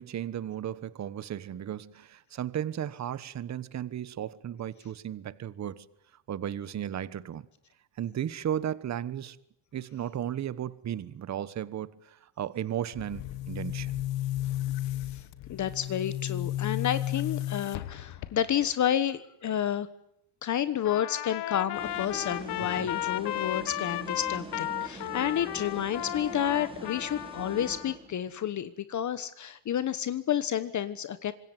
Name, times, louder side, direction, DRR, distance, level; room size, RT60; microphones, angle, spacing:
voice 1, 0.0-5.8 6.3-7.5 8.0-9.4 9.7-13.9 22.8-22.9, right 10 dB, 40° right, 1.2 m, -35 dB
Boom, 12.9-18.7, left 14 dB, 80° left, 1.8 m, -33 dB
voice 2, 15.5-19.9 20.4-31.3, left 10 dB, 40° left, 1.3 m, -30 dB
Trumpet, 20.8-28.0, left 14 dB, 65° left, 1.3 m, -35 dB
sound 1, 21.7-28.3, right 2 dB, 10° right, 4.1 m, -44 dB
26.0 x 21.5 x 9.5 m
cardioid pair, 125°, 43 cm